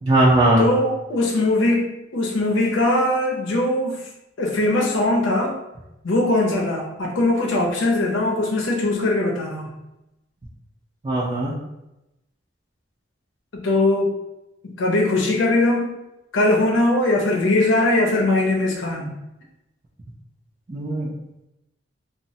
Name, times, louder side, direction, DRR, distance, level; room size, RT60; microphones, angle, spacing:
voice 1, 0.0-0.6 11.0-11.5 20.7-21.1, right 1 dB, 30° right, -7 dB, 0.4 m, -19 dB
voice 2, 0.6-4.0 4.4-5.5 6.0-9.7 13.5-14.2 14.6-15.9 16.3-19.1, left 2 dB, 85° left, 0 dB, 0.6 m, -20 dB
3.0 x 2.0 x 2.7 m, 0.91 s
head